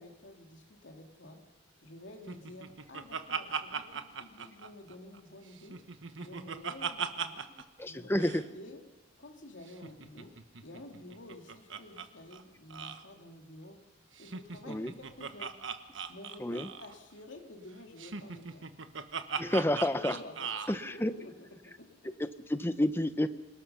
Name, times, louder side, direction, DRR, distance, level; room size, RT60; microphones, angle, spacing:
voice 1, 0.0-1.5 1.8-5.9 6.1-7.5 7.8-8.8 9.2-13.9 14.2-15.6 16.1-18.7 19.6-20.5 20.8-22.2, left 1 dB, 75° left, 2 dB, 2.8 m, -50 dB
Laughter, 2.3-5.2 5.5-7.6 7.9-8.0 8.2-8.4 9.7-12.1 12.3-12.4 12.7-13.0 14.2-17.0 18.0-20.8, right 6 dB, 80° right, 1.3 m, -39 dB
voice 2, 7.8-8.5 14.7-14.9 16.4-16.7 19.4-20.2 20.7-21.1 22.2-23.3, left 1 dB, 10° left, 11 dB, 0.8 m, -30 dB
27.0 x 19.0 x 5.7 m, 1.1 s
head